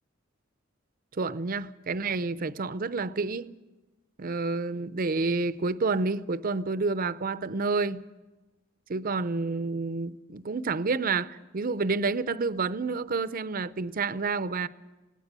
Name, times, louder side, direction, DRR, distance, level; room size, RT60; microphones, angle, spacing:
voice 1, 1.1-3.5 4.2-8.0 8.9-14.7, right 3 dB, 45° right, 0.6 m, -29 dB
19.5 x 17.5 x 8.2 m
head